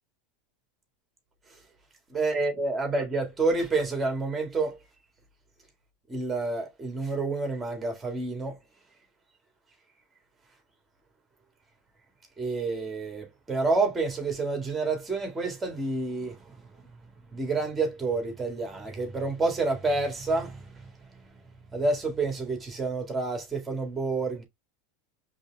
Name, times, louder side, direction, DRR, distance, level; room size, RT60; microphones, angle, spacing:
voice 1, 2.1-4.8 6.1-8.6 12.4-16.6 17.3-20.9 21.7-24.4, right 3 dB, 15° right, 1.9 m, -29 dB
5.0 x 3.5 x 2.3 m
hypercardioid pair, 100°, 0 cm